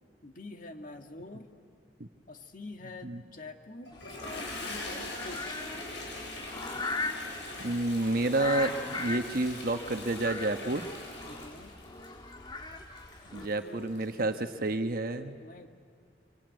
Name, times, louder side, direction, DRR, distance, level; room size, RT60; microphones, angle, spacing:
voice 1, 0.2-1.5 2.3-3.9 4.2-5.7 11.2-11.7 13.2-14.6 15.4-15.7, left 2 dB, 50° left, 5 dB, 1.8 m, -46 dB
Toilet flush, 3.9-14.4, left 2 dB, 85° left, 7.7 m, -42 dB
sound 1, 3.9-13.5, left 2 dB, 25° left, 1.6 m, -40 dB
voice 2, 7.6-10.9 13.3-15.4, right 2 dB, 55° right, 7 dB, 1.2 m, -30 dB
25.5 x 23.5 x 9.4 m, 2.2 s
head